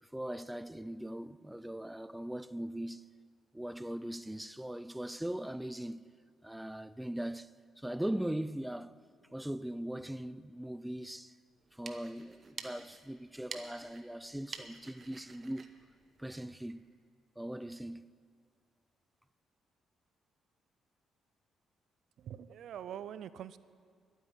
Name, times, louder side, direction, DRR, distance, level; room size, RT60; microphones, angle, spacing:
voice 1, 0.0-3.1 3.5-6.0 6.4-7.5 7.8-8.9 9.3-11.4 11.7-15.7 16.2-16.8 17.4-18.1, right 1 dB, 5° right, 0.4 m, -40 dB
sound 1, 11.6-16.9, right 4 dB, 40° right, 1.1 m, -50 dB
voice 2, 22.2-23.6, right 9 dB, 70° right, 0.5 m, -44 dB
12.0 x 9.1 x 9.6 m
cardioid pair, 90°, 0 cm